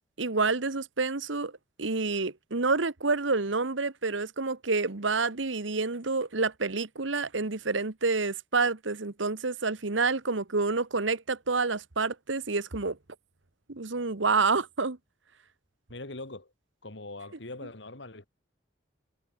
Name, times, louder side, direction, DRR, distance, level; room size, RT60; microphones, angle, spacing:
voice 1, 0.2-1.5 1.8-13.0 13.7-15.0, right 4 dB, 80° right, 1.4 m, -28 dB
voice 2, 15.9-16.5 16.8-18.3, left 2 dB, 65° left, 2.5 m, -42 dB
head